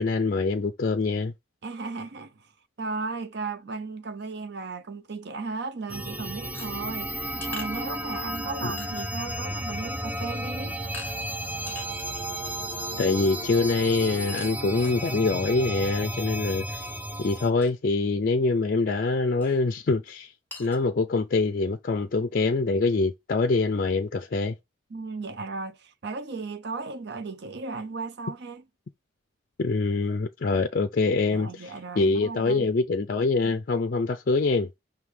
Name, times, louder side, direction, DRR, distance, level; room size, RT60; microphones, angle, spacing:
voice 1, 0.0-1.3 8.6-8.7 13.0-16.9 17.2-20.3 20.6-24.5 29.6-31.7 32.0-34.7, left 3 dB, 45° left, 0.4 m, -24 dB
voice 2, 1.6-2.5 2.8-7.1 7.5-10.8 11.7-11.8 24.9-28.6 31.3-32.7, right 4 dB, 60° right, 0.6 m, -35 dB
sound 1, 5.9-17.5, right 1 dB, 10° right, 0.5 m, -33 dB
sound 2, 6.5-8.4 8.8-9.3 9.7-9.8 10.2-10.4 10.9-11.1 11.5-12.7 13.9-15.2 16.8-17.0 17.3-17.4 17.6-17.7 19.4-19.6 20.1-20.2 20.5-20.8, left 3 dB, 10° left, 1.4 m, -44 dB
5.8 x 3.6 x 4.8 m
head